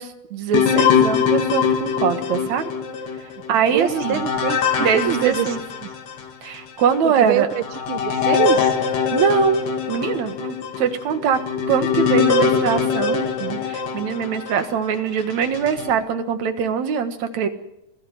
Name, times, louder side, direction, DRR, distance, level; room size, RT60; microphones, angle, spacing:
voice 1, 0.0-2.7 3.2-4.2 4.8-5.6 6.4-7.5 9.1-9.6 9.9-11.4 11.7-17.5, right 7 dB, 65° right, 8 dB, 2.7 m, -22 dB
sound 1, 0.5-6.3 6.8-6.9 7.5-14.7 15.3-15.9, left 6 dB, 85° left, 3.7 m, -22 dB
voice 2, 3.7-5.5 5.8-5.9 7.0-8.7, right 11 dB, 80° right, 12 dB, 1.1 m, -24 dB
26.0 x 16.5 x 7.8 m, 0.84 s
omnidirectional pair, 3.7 m